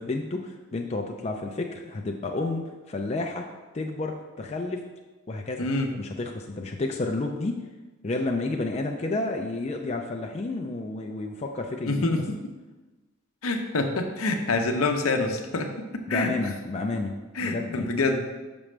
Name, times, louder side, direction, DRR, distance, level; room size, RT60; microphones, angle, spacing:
voice 1, 0.0-3.5 3.7-4.8 5.3-5.7 5.9-7.6 8.0-12.1 16.1-17.9, left 2 dB, 30° left, 2 dB, 0.4 m, -31 dB
voice 2, 5.6-5.9 11.9-12.4 13.4-16.3 17.3-18.2, left 3 dB, 75° left, 5 dB, 0.7 m, -26 dB
6.2 x 6.0 x 3.3 m, 1.2 s
head